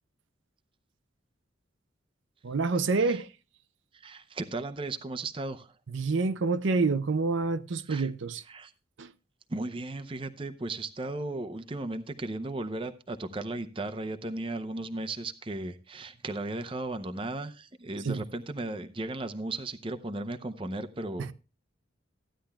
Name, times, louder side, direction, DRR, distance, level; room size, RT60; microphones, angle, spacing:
voice 1, 2.4-3.3 5.9-8.4 9.0-9.1 18.0-18.2 21.2-21.3, right 4 dB, 75° right, 0.6 m, -27 dB
voice 2, 3.9-5.7 7.9-8.1 8.5-8.7 9.5-21.3, right 2 dB, 25° right, 0.6 m, -36 dB
15.0 x 10.0 x 2.2 m
head